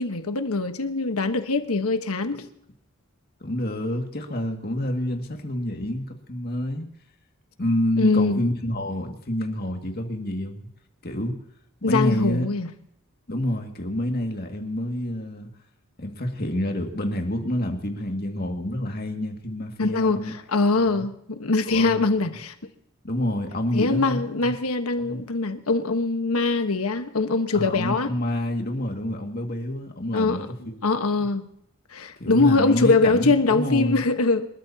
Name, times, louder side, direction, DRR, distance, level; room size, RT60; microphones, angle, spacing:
voice 1, 0.0-2.4 8.0-8.4 11.8-12.7 19.8-22.5 23.7-28.1 30.1-30.5 30.8-31.4 31.9-34.5, left 3 dB, 85° left, 1.3 m, -22 dB
voice 2, 3.4-6.9 7.6-10.7 11.0-11.4 11.8-12.5 13.3-15.5 16.0-20.3 20.9-21.0 21.7-22.1 23.0-24.5 25.0-25.2 27.5-30.8 32.2-34.1, left 1 dB, 45° left, 2.2 m, -28 dB
28.5 x 13.0 x 2.9 m
head